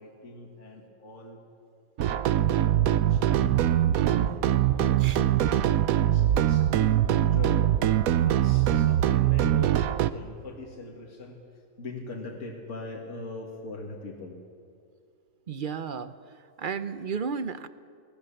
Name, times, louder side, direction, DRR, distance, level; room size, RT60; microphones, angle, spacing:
voice 1, 0.0-1.4 2.0-5.2 5.8-7.8 8.2-11.4 11.8-14.4, left 2 dB, 55° left, -1 dB, 2.2 m, -42 dB
sound 1, 2.0-10.1, right 11 dB, 70° right, 1.0 m, -23 dB
voice 2, 15.5-16.1 16.6-17.7, right 6 dB, 55° right, 12 dB, 0.6 m, -33 dB
20.5 x 18.5 x 7.0 m, 2.3 s
omnidirectional pair, 1.6 m